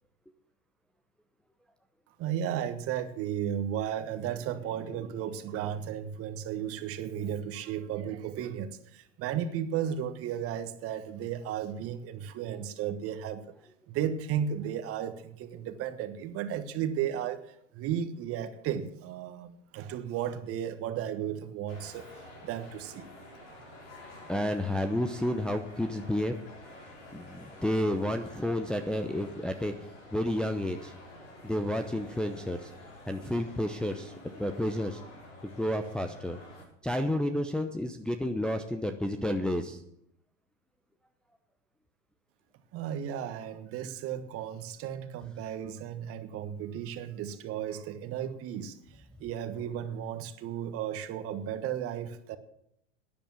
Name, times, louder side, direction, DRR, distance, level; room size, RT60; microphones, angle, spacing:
voice 1, 2.2-13.4 13.9-22.1 22.4-23.1 42.7-52.4, right 9 dB, 35° right, 10 dB, 1.4 m, -34 dB
sound 1, 21.7-36.7, left 1 dB, 65° left, 5.4 m, -50 dB
voice 2, 24.3-26.4 27.1-29.7 30.1-30.9 31.4-32.7 33.1-35.0 35.4-36.4 36.8-39.8, left 1 dB, ahead, 4 dB, 0.7 m, -31 dB
12.0 x 10.5 x 6.0 m, 0.74 s
hypercardioid pair, 100°, 38 cm